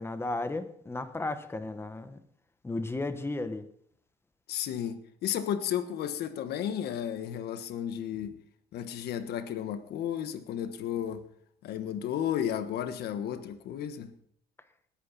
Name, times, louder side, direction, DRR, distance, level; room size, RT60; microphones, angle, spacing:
voice 1, 0.0-2.2 2.6-3.7, left 2 dB, 15° left, 1.2 m, -34 dB
voice 2, 4.5-8.3 8.7-11.2 11.6-14.1, left 9 dB, 70° left, 1.4 m, -33 dB
19.5 x 8.9 x 4.2 m
cardioid pair, 110°, 17 cm